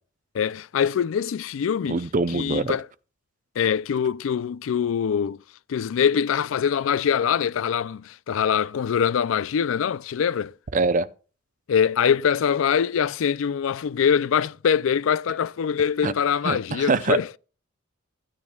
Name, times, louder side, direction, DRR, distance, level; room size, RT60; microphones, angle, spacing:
voice 1, 0.3-2.0 2.3-2.9 3.6-5.4 5.7-10.5 11.7-17.3, left 7 dB, 75° left, 0.4 m, -23 dB
voice 2, 1.9-2.8 10.7-11.1 16.0-16.1 16.4-17.4, right 3 dB, 40° right, 0.5 m, -24 dB
15.5 x 9.5 x 2.3 m
head